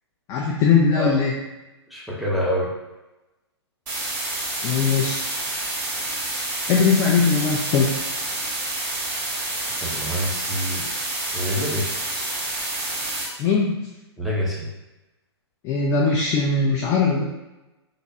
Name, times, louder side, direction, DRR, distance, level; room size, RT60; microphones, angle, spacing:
voice 1, 0.3-1.3 4.6-5.2 6.7-8.0 13.4-13.8 15.6-17.2, left 5 dB, 20° left, -3 dB, 0.3 m, -20 dB
voice 2, 1.9-2.7 9.8-10.9 11.3-12.0 14.2-14.7, equal, ahead, -6 dB, 0.8 m, -26 dB
sound 1, 3.9-13.3, right 2 dB, 40° right, 1.2 m, -28 dB
3.4 x 3.0 x 2.7 m, 1.0 s
figure-of-eight pair, 120°, 14 cm